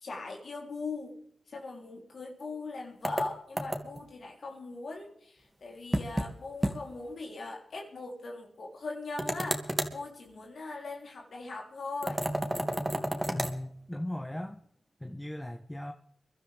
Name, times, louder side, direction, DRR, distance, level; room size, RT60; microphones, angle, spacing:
voice 1, 0.0-1.1 1.5-9.6 9.9-12.2, left 3 dB, 75° left, 0 dB, 3.5 m, -40 dB
sound 1, 3.0-4.1 5.9-6.3 6.6-6.8 7.1-7.2 9.2-10.0 12.0-13.6, right 1 dB, 15° right, 2.3 m, -31 dB
voice 2, 13.3-14.6 15.0-15.9, left 1 dB, 10° left, 5 dB, 1.3 m, -37 dB
23.5 x 12.0 x 3.5 m, 0.67 s
cardioid pair, 40°, 0 cm